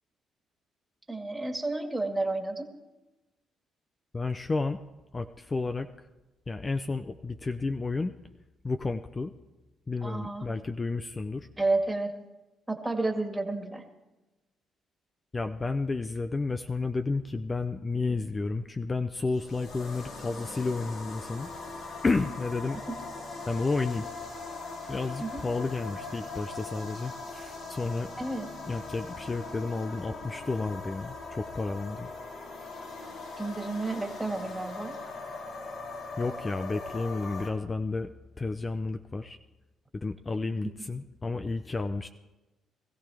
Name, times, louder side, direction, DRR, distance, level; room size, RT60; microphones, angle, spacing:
voice 1, 1.1-2.7 10.0-10.5 11.6-12.1 12.7-13.8 22.9-23.0 25.2-25.4 28.2-28.5 33.4-35.0 40.6-40.7, right 2 dB, 15° right, 4 dB, 1.9 m, -31 dB
voice 2, 4.1-4.8 5.1-5.9 6.5-8.1 8.6-9.3 9.9-11.5 15.3-21.5 22.0-22.8 23.5-24.1 24.9-28.1 28.7-32.1 36.2-39.4 39.9-42.1, left 3 dB, 25° left, 8 dB, 0.5 m, -31 dB
sound 1, 19.2-37.5, left 3 dB, 80° left, 3.0 m, -41 dB
20.5 x 14.5 x 3.5 m, 1.1 s
cardioid pair, 90°, 0 cm